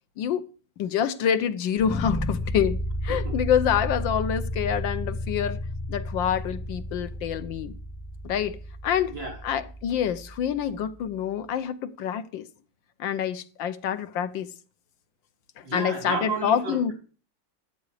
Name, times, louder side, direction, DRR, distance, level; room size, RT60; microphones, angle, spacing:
voice 1, 0.8-5.6 5.9-7.8 8.2-8.6 8.8-9.1 9.4-12.5 13.0-14.5 15.6-16.9, left 9 dB, 85° left, 1.6 m, -27 dB
sound 1, 1.8-10.8, left 1 dB, 5° left, 0.3 m, -32 dB
voice 2, 9.1-9.4 15.6-16.9, right 4 dB, 75° right, 4.2 m, -32 dB
13.5 x 8.7 x 4.8 m
omnidirectional pair, 2.1 m